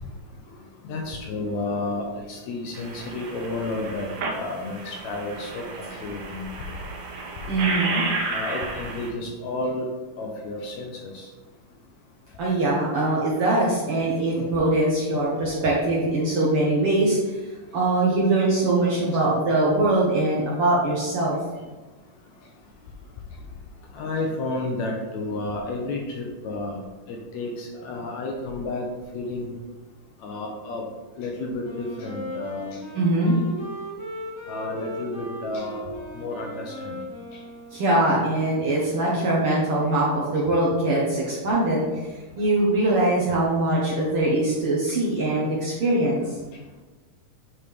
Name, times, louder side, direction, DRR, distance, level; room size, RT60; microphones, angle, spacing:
voice 1, 0.8-6.5 8.3-9.9 10.2-11.3 19.1-19.2 23.9-26.8 27.1-28.9 29.1-29.5 30.2-30.8 31.2-32.8 34.5-35.8 36.2-37.0 37.3-37.4, left 2 dB, 75° left, 1 dB, 1.8 m, -31 dB
sound 1, 2.7-9.1, right 3 dB, 85° right, 2.6 m, -32 dB
voice 2, 7.5-8.0 12.4-17.4 17.7-21.4 32.9-33.3 37.7-41.8 42.4-46.3, right 2 dB, 60° right, -5 dB, 1.6 m, -22 dB
Wind instrument woodwind instrument, 31.6-38.3, equal, 15° right, 0.8 m, -37 dB
8.3 x 4.2 x 3.5 m, 1.2 s
omnidirectional pair, 3.7 m